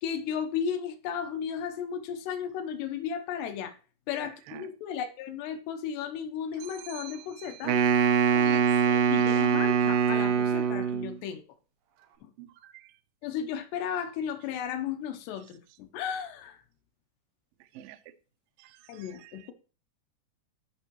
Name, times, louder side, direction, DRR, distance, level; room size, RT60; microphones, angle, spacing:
voice 1, 0.0-3.8 4.1-7.8 8.9-11.4 12.2-12.3 13.2-16.6 18.9-19.5, left 8 dB, 80° left, 7 dB, 3.0 m, -34 dB
voice 2, 4.2-4.6 6.8-7.7 8.3-8.6 9.3-9.4 12.4-12.9 17.7-18.0 18.6-19.5, right 13 dB, 90° right, 8 dB, 2.0 m, -46 dB
Wind instrument woodwind instrument, 7.6-11.1, right 7 dB, 70° right, 2.4 m, -23 dB
15.0 x 5.6 x 3.1 m, 0.34 s
omnidirectional pair, 4.8 m